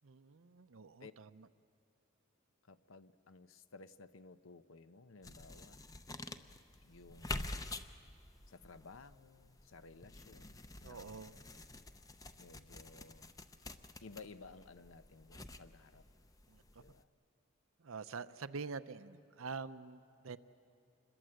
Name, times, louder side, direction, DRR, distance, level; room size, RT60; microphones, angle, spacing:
voice 1, 0.0-1.5 10.8-11.3 16.5-16.8 17.8-20.4, right 4 dB, 90° right, 12 dB, 0.7 m, -46 dB
voice 2, 2.7-5.8 6.8-7.5 8.5-11.2 12.4-13.3 14.0-16.0 16.8-17.1, left 4 dB, 85° left, 12 dB, 0.8 m, -56 dB
sound 1, 5.2-17.0, left 2 dB, 15° left, 0.6 m, -48 dB
26.5 x 21.5 x 7.7 m, 2.6 s
head